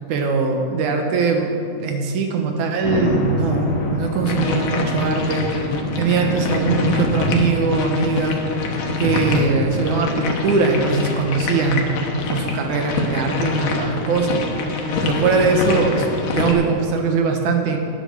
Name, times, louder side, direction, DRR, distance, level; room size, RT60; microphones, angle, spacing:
voice 1, 0.1-5.7 6.0-8.4 9.0-12.0 12.3-14.4 15.0-16.1 16.3-17.8, right 4 dB, 70° right, 4 dB, 2.6 m, -21 dB
sound 1, 2.8-9.9, left 2 dB, 55° left, 1.5 m, -26 dB
sound 2, 4.3-16.5, left 3 dB, 75° left, 2.8 m, -25 dB
11.0 x 10.5 x 6.4 m, 2.4 s
omnidirectional pair, 3.8 m